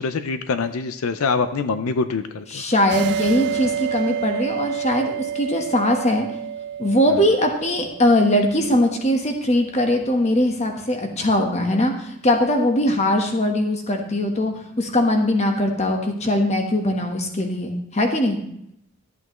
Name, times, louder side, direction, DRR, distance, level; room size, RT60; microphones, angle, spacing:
voice 1, 0.0-2.6 7.1-7.2, left 4 dB, 85° left, 10 dB, 0.5 m, -24 dB
voice 2, 2.5-6.3 6.8-18.4, left 1 dB, 30° left, 3 dB, 1.2 m, -21 dB
sound 1, 2.9-10.0, right 9 dB, 55° right, 0.4 m, -30 dB
13.0 x 8.3 x 3.0 m, 0.75 s
head